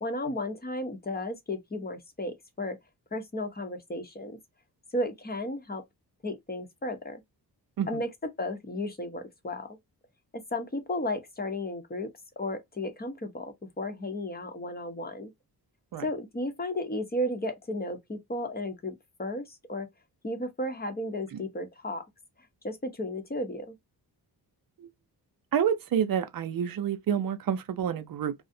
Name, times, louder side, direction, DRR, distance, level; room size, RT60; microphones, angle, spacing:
voice 1, 0.0-2.8 3.1-4.4 4.9-5.8 6.2-7.2 7.9-9.7 10.3-12.1 12.4-15.3 16.0-19.9 20.2-22.0 22.6-23.8, left 1 dB, 25° left, 0.7 m, -34 dB
voice 2, 25.5-28.3, right 8 dB, 60° right, 0.6 m, -28 dB
2.4 x 2.0 x 2.6 m
cardioid pair, 80°, 39 cm